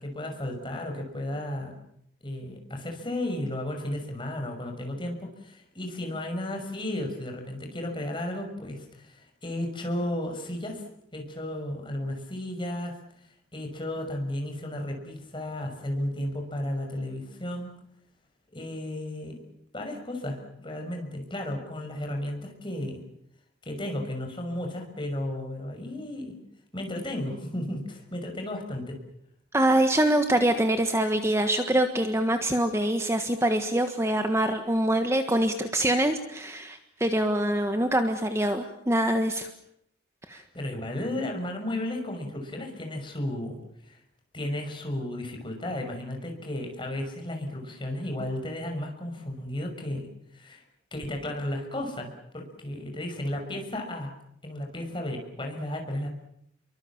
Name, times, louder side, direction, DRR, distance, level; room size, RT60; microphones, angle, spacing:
voice 1, 0.0-1.7 2.2-10.8 11.1-12.9 13.5-17.7 18.5-19.4 19.7-23.0 23.6-26.4 26.7-29.0 40.3-44.0 44.3-50.6 50.9-54.1 54.4-56.1, left 1 dB, 25° left, 2 dB, 6.1 m, -34 dB
voice 2, 29.5-39.5 40.3-40.4, right 1 dB, 15° right, 7 dB, 1.5 m, -24 dB
29.5 x 23.5 x 7.3 m, 0.74 s
head